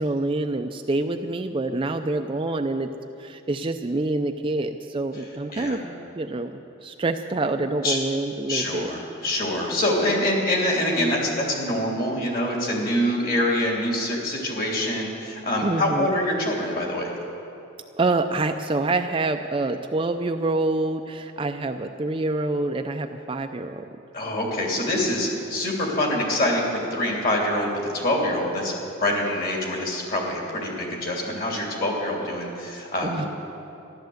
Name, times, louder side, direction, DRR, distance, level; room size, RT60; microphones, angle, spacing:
voice 1, 0.0-2.9 3.2-5.8 6.1-8.9 15.6-16.1 18.0-23.8 33.0-33.3, right 2 dB, 25° right, 6 dB, 0.4 m, -26 dB
voice 2, 8.5-17.1 24.1-33.3, left 1 dB, 45° left, -1 dB, 3.0 m, -25 dB
14.0 x 11.5 x 7.9 m, 2.9 s
head